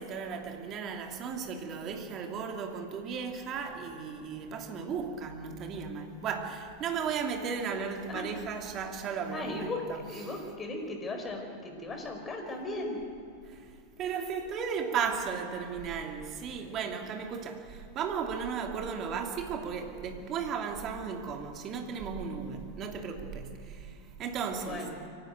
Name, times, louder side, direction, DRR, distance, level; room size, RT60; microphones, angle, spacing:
voice 1, 0.0-10.3 13.5-13.7 14.0-24.9, right 6 dB, 30° right, 2.8 m, -35 dB
voice 2, 9.3-9.8 10.1-13.0 24.6-24.9, left 2 dB, 20° left, 5.0 m, -37 dB
24.0 x 16.5 x 9.2 m
figure-of-eight pair, 90°, 0 cm